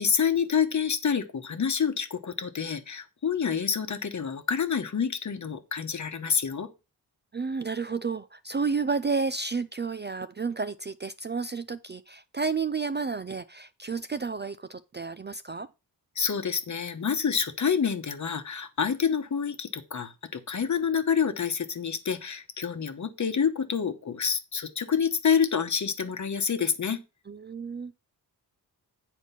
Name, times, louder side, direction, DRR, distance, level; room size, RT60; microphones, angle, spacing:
voice 1, 0.0-6.7 16.2-27.0, left 7 dB, 45° left, 1.1 m, -27 dB
voice 2, 7.3-15.7 27.3-27.9, right 4 dB, 30° right, 0.3 m, -31 dB
9.2 x 4.5 x 5.7 m
wide cardioid pair, 145°, 39 cm